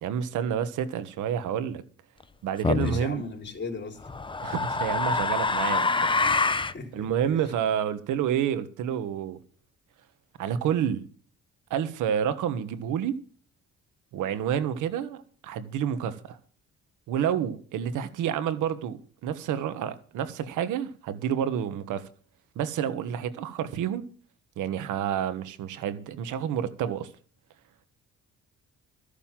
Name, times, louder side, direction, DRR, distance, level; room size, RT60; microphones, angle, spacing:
voice 1, 0.0-1.8 2.4-3.2 4.4-6.3 6.9-9.4 10.4-11.0 11.7-13.2 14.1-16.4 17.1-22.1 22.5-24.1 24.6-27.1, right 9 dB, 90° right, 1.5 m, -29 dB
sound 1, 2.6-3.0 4.0-6.8, left 3 dB, 15° left, 0.8 m, -25 dB
voice 2, 2.8-4.1 6.7-7.4, left 4 dB, 35° left, 3.9 m, -38 dB
14.0 x 6.7 x 7.5 m
cardioid pair, 90°, 30 cm